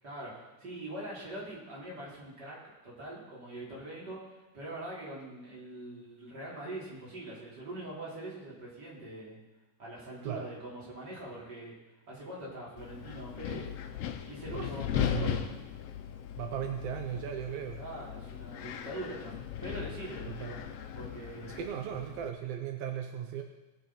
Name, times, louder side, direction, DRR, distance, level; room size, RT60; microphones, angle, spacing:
voice 1, 0.0-2.6 2.8-9.4 9.8-11.7 12.1-13.8 14.3-15.4 17.7-20.7 20.9-21.6, right 1 dB, 30° right, -6 dB, 3.6 m, -43 dB
Wind, 12.8-22.3, left 10 dB, 80° left, 1.4 m, -38 dB
voice 2, 14.5-15.4 16.4-17.8 20.3-20.5 21.5-23.4, right 9 dB, 80° right, 5 dB, 1.4 m, -37 dB
19.0 x 6.5 x 4.4 m, 1.1 s
omnidirectional pair, 3.6 m